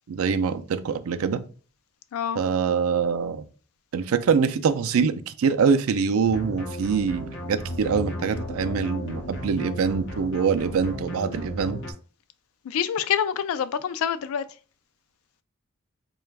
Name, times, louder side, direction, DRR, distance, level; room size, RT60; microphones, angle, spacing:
voice 1, 0.1-1.4 2.4-3.4 3.9-11.8, right 6 dB, 85° right, 0.4 m, -24 dB
voice 2, 2.1-2.4 12.6-14.4, left 8 dB, 80° left, 0.3 m, -26 dB
sound 1, 6.2-11.9, equal, 55° left, 0.7 m, -35 dB
3.8 x 2.3 x 3.3 m
head